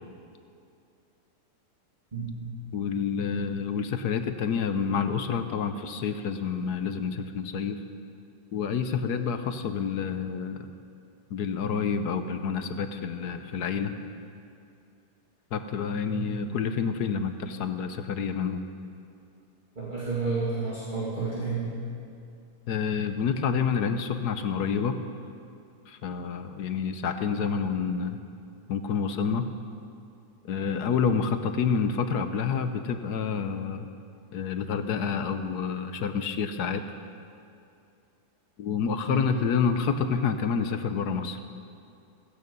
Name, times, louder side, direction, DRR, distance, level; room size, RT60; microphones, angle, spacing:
voice 1, 2.1-2.5 16.1-16.4 19.8-21.7 39.1-39.3, right 4 dB, 25° right, -7 dB, 2.5 m, -31 dB
voice 2, 2.7-7.8 8.5-10.7 11.3-13.9 15.5-18.6 22.7-25.0 25.9-28.2 28.7-29.5 30.5-33.9 34.3-36.8 38.6-41.4, left 6 dB, 70° left, 8 dB, 1.4 m, -28 dB
16.0 x 15.5 x 5.4 m, 2.5 s
omnidirectional pair, 1.8 m